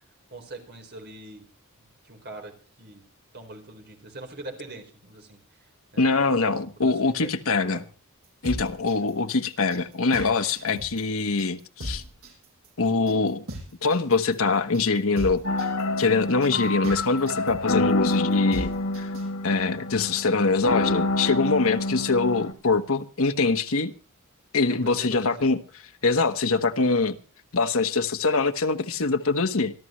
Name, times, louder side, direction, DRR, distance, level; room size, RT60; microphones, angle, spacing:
voice 1, 0.3-1.4 2.0-2.5 2.8-3.1 3.3-5.7 5.9-6.5 6.8-7.8 24.7-25.5, right 2 dB, 50° right, 4.3 m, -43 dB
voice 2, 6.0-7.8 8.4-12.0 12.8-13.4 13.8-15.4 16.0-18.7 19.0-19.1 19.4-23.9 24.5-25.6 26.0-27.2 27.5-29.7, left 3 dB, 65° left, 1.3 m, -23 dB
sound 1, 8.2-19.3, equal, 75° right, 7.6 m, -37 dB
sound 2, 15.4-22.5, left 2 dB, 90° left, 2.6 m, -27 dB
26.0 x 12.5 x 3.2 m
head